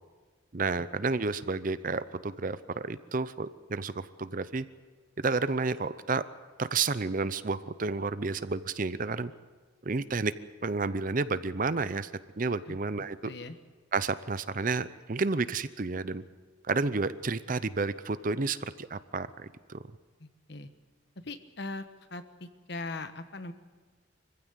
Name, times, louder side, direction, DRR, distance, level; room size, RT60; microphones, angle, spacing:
voice 1, 0.5-4.7 5.2-6.3 6.6-9.3 9.8-10.3 10.6-12.1 12.4-13.2 13.9-16.2 16.7-19.8, right 4 dB, 40° right, 15 dB, 0.6 m, -31 dB
voice 2, 13.2-13.6 20.2-20.7 21.2-21.8 22.1-23.5, left 2 dB, 55° left, 10 dB, 1.2 m, -40 dB
24.5 x 15.5 x 8.2 m, 1.4 s
head